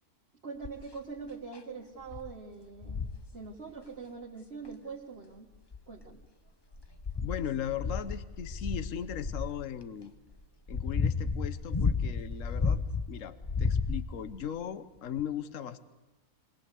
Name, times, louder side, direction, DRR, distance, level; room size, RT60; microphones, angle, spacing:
voice 1, 0.4-3.0 3.3-5.5 5.9-6.2, right 5 dB, 45° right, -3 dB, 2.0 m, -43 dB
sound 1, 0.6-0.9 1.5-1.6 2.1-2.3 2.8-3.3 4.7-4.8 5.5-6.2 6.7-9.6 10.3-13.1 13.4-14.4 15.2-15.3, left 4 dB, 25° left, 0.6 m, -32 dB
voice 2, 7.2-10.1 10.7-15.8, left 9 dB, 60° left, 12 dB, 1.3 m, -38 dB
24.0 x 18.5 x 8.3 m, 1.0 s
omnidirectional pair, 1.5 m